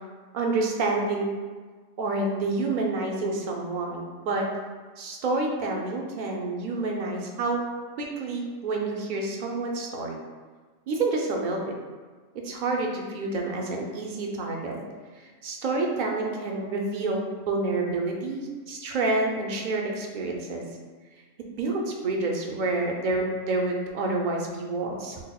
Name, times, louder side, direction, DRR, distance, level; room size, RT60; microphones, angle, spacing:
voice 1, 0.3-1.3 2.0-4.5 5.0-7.6 8.0-10.2 10.9-11.7 12.4-14.8 15.2-20.6 21.6-25.2, right 3 dB, 55° right, 0 dB, 0.5 m, -28 dB
6.1 x 2.0 x 2.3 m, 1.4 s
omnidirectional pair, 1.3 m